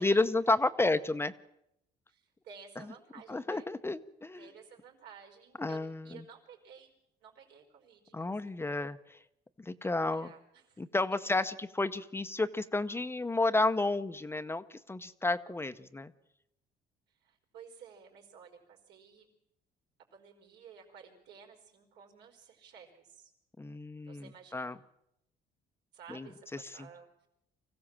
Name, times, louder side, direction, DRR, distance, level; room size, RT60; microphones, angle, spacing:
voice 1, 0.0-1.3 3.3-4.5 5.6-6.2 8.1-9.2 9.6-10.3 10.8-16.1 23.6-24.7 26.1-26.3, left 2 dB, 15° left, 11 dB, 0.8 m, -31 dB
voice 2, 2.1-3.7 4.4-6.9 7.2-8.8 10.1-10.8 11.1-11.3 17.1-19.3 20.1-23.3 24.0-24.8 25.9-27.1, right 6 dB, 80° right, 1 dB, 4.9 m, -54 dB
25.0 x 15.5 x 7.4 m, 0.82 s
cardioid pair, 110°, 17 cm